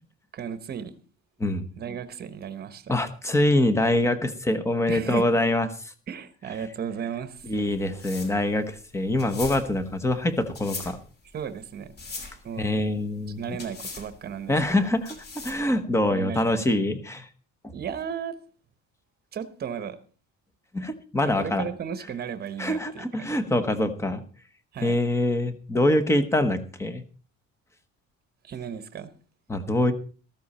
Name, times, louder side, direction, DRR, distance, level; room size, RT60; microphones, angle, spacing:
voice 1, 0.3-1.0 1.8-3.0 4.9-5.3 6.1-7.5 11.3-12.0 12.4-12.7 13.4-14.5 16.1-16.6 17.7-18.4 19.3-20.0 21.3-23.5 24.7-24.9 28.4-29.1, right 7 dB, 30° right, 12 dB, 1.1 m, -34 dB
voice 2, 2.9-5.9 7.4-11.0 12.6-13.6 14.5-17.3 17.6-17.7 20.7-21.6 22.6-24.2 24.8-27.0 29.5-29.9, left 1 dB, 10° left, 9 dB, 1.0 m, -24 dB
sound 1, 7.4-15.8, left 3 dB, 30° left, 2.8 m, -41 dB
14.0 x 13.5 x 4.2 m, 0.38 s
cardioid pair, 175°, 31 cm